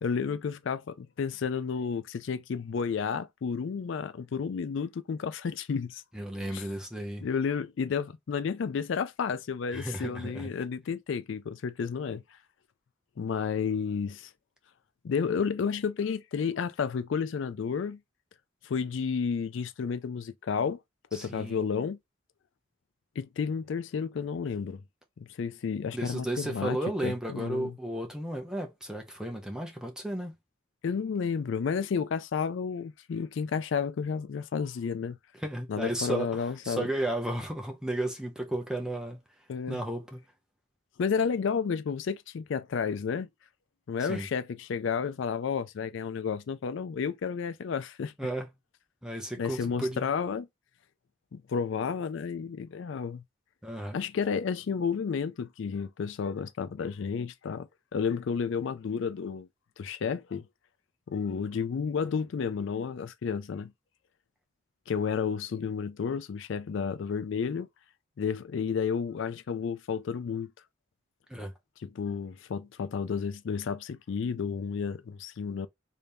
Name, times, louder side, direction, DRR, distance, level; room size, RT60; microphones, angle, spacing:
voice 1, 0.0-6.0 6.5-6.6 7.2-12.4 13.2-14.3 15.0-18.0 18.6-20.8 21.1-22.0 23.2-24.8 25.2-27.7 30.8-35.2 35.7-36.9 39.5-39.8 41.0-43.3 43.9-48.1 49.4-50.5 51.3-53.2 53.9-59.5 59.8-60.5 61.1-63.7 64.9-67.7 68.2-70.5 71.8-75.7, left 6 dB, 65° left, 0.4 m, -31 dB
voice 2, 6.1-7.2 9.7-10.5 21.1-21.7 25.9-30.3 35.3-39.2 39.7-40.2 44.0-44.3 48.2-48.5 49.0-50.1 53.6-54.0 71.3-71.5, right 1 dB, 5° right, 0.6 m, -34 dB
3.3 x 2.7 x 3.4 m
head